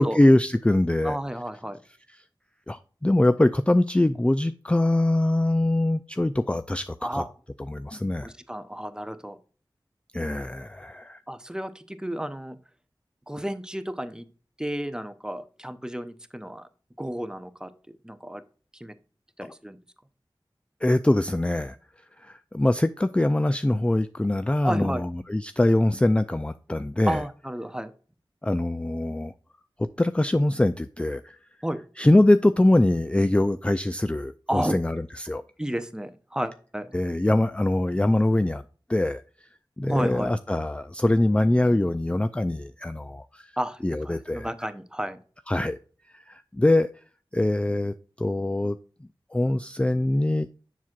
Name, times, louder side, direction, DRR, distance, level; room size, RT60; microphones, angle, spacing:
voice 1, 0.0-1.2 2.7-7.2 7.7-8.3 10.1-11.2 20.8-21.8 22.2-27.2 28.4-29.3 29.8-31.4 32.0-35.4 36.9-38.6 38.9-39.2 39.8-43.5 43.8-44.5 45.5-45.8 46.1-46.9 47.3-48.8 49.3-50.5, left 1 dB, 15° left, 0.3 m, -23 dB
voice 2, 1.0-1.8 7.0-7.3 8.2-9.4 11.3-12.6 13.3-14.2 14.6-16.7 17.0-17.7 18.0-18.4 18.7-18.9 19.4-19.8 24.6-25.0 27.1-27.9 31.6-31.8 34.5-34.8 35.6-36.9 39.9-40.3 43.6-45.2, equal, 10° right, 0.7 m, -32 dB
7.2 x 5.9 x 2.4 m
wide cardioid pair, 55°, 9 cm